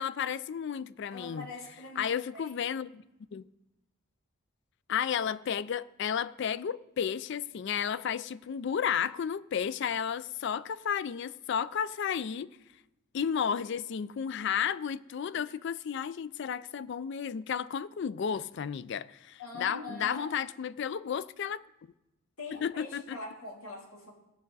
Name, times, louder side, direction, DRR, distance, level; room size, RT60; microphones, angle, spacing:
voice 1, 0.0-1.5 2.0-3.0 3.3-3.5 4.9-12.5 13.1-21.6 22.5-23.2, left 7 dB, 50° left, 0.3 m, -33 dB
voice 2, 1.1-2.5 15.3-15.5 19.4-20.4 22.4-24.1, left 2 dB, 75° left, 3.0 m, -43 dB
17.5 x 6.3 x 4.0 m
head